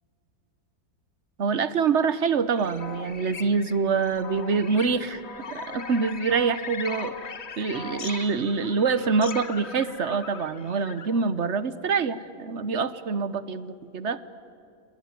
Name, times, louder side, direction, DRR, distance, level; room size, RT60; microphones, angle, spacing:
voice 1, 1.4-5.2 5.5-7.1 7.6-14.2, right 5 dB, 50° right, 14 dB, 1.1 m, -25 dB
sound 1, 2.6-11.2, left 5 dB, 45° left, 1.3 m, -39 dB
29.5 x 19.5 x 9.6 m, 2.6 s
omnidirectional pair, 1.7 m